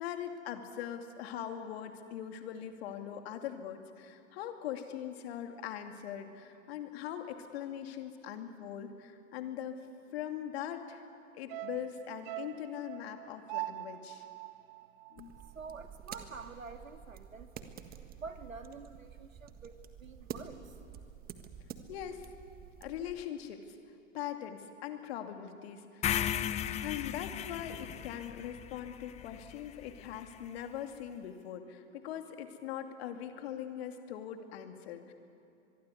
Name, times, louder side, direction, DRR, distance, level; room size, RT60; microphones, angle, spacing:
voice 1, 0.0-9.8 10.1-11.0 11.3-14.3 15.1-15.4 21.9-22.3 22.8-23.8 24.1-26.2 26.8-35.1, left 10 dB, 50° left, 6 dB, 2.6 m, -41 dB
sound 1, 11.5-15.9 16.2-16.3, right 17 dB, 45° right, 1.3 m, -43 dB
sound 2, 15.2-23.2, right 8 dB, 25° right, 1.6 m, -49 dB
voice 2, 15.5-17.7 18.2-20.8, right 4 dB, 80° right, 8 dB, 2.0 m, -48 dB
sound 3, 26.0-30.2, left 10 dB, 15° left, 0.7 m, -36 dB
24.5 x 22.5 x 9.6 m, 2.7 s
figure-of-eight pair, 105°, 39 cm